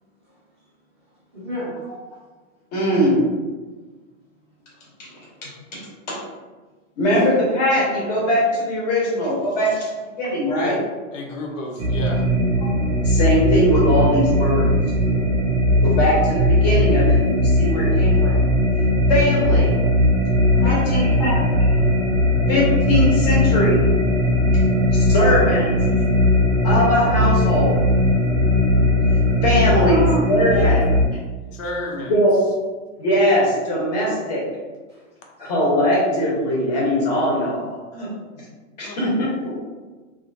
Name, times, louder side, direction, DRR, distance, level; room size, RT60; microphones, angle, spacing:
voice 1, 1.3-1.7 4.7-4.8 5.1-5.4 20.5-21.6 29.7-30.2 30.5-30.9 34.9-35.0 35.4-35.5, equal, 25° right, -11 dB, 0.4 m, -30 dB
voice 2, 2.7-3.2 5.7-5.8 6.1-6.2 7.0-9.9 10.2-10.8 13.0-14.7 15.8-18.4 19.1-19.7 20.6-21.3 22.5-23.8 24.9-25.7 26.6-27.8 29.4-30.8 32.1-32.4 33.0-34.4 35.4-38.1 38.8-39.5, equal, 35° left, -6 dB, 0.9 m, -20 dB
voice 3, 11.1-12.2 31.5-32.1 38.8-39.0, left 1 dB, 75° left, 0 dB, 0.8 m, -31 dB
sound 1, 11.8-31.1, left 1 dB, 85° right, 0.7 m, -18 dB
2.7 x 2.4 x 2.6 m, 1.3 s
supercardioid pair, 175°, 39 cm